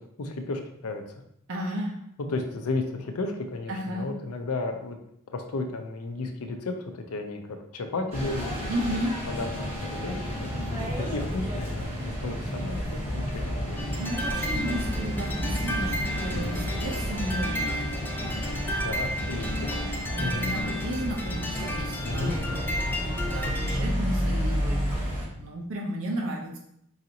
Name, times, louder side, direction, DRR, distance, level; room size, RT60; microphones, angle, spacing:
voice 1, 0.2-1.2 2.3-5.0 5.3-8.7 9.3-13.8 16.3-16.8 18.8-19.7 20.2-20.6 22.0-22.3, left 3 dB, 75° left, 5 dB, 0.5 m, -34 dB
voice 2, 1.5-2.0 3.7-4.1 8.7-9.2 14.0-17.8 18.1-18.9 19.3-19.7 20.1-26.6, right 1 dB, 65° right, -2 dB, 0.7 m, -34 dB
sound 1, 8.1-25.3, equal, 30° right, 1.5 m, -31 dB
sound 2, 13.8-23.8, equal, 10° left, 0.4 m, -33 dB
4.8 x 2.6 x 2.8 m, 0.74 s
head